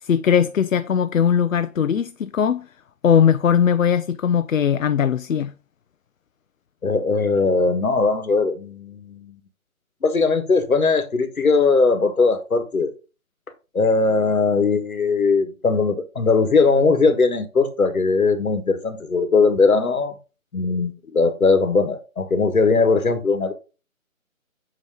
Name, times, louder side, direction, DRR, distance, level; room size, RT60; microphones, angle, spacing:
voice 1, 0.0-2.7 3.0-5.5, left 8 dB, 70° left, 0.5 m, -19 dB
voice 2, 6.8-9.4 10.0-12.9 13.7-20.1 20.5-23.5, left 4 dB, 85° left, 1.5 m, -19 dB
8.3 x 3.0 x 4.8 m
figure-of-eight pair, 175°, 42 cm